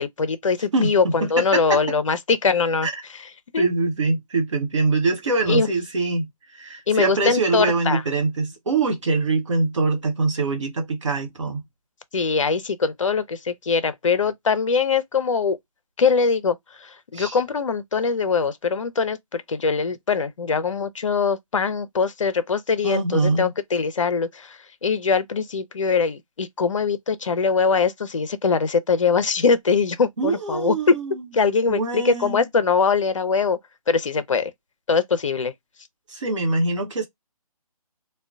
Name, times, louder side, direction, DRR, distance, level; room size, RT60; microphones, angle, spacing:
voice 1, 0.0-2.9 3.5-3.7 5.5-5.7 6.9-8.0 12.1-15.6 16.0-30.9 31.3-33.6 33.9-34.5 34.9-35.5, left 5 dB, 55° left, 0.5 m, -22 dB
voice 2, 0.7-1.8 2.8-2.9 3.6-11.6 17.1-17.4 22.8-23.5 30.2-31.1 31.7-32.4 36.1-37.1, right 3 dB, 50° right, 0.8 m, -23 dB
3.7 x 2.2 x 2.3 m
figure-of-eight pair, 150°, 19 cm